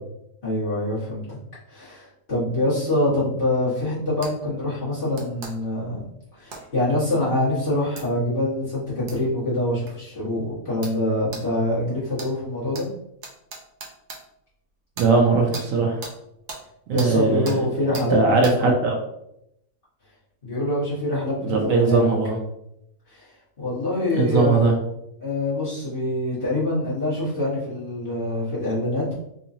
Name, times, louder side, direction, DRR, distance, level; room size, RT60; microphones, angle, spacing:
voice 1, 0.4-1.4 1.7-6.1 6.3-12.9 16.9-18.2 18.5-18.7 20.4-22.0 23.1-23.3 23.6-24.6 25.2-29.1, left 1 dB, 40° left, -10 dB, 1.8 m, -25 dB
sound 1, 4.2-4.3 5.1-5.5 6.5-6.6 8.0-8.1 9.1-9.2 9.9-10.0 10.8-11.0 11.3-11.4 12.2-12.3 12.7-12.8 13.2-14.2 14.9-15.1 15.5-15.7 16.0-16.1 16.5-16.6 17.0-17.1 17.5-17.6 17.9-18.1 18.4-18.6, right 3 dB, 50° right, 0.7 m, -36 dB
voice 2, 15.0-16.0 16.9-17.5 18.1-19.0 21.4-22.4 24.1-24.7, right 4 dB, 70° right, 1 dB, 1.0 m, -19 dB
3.9 x 2.8 x 2.6 m, 0.80 s
omnidirectional pair, 1.5 m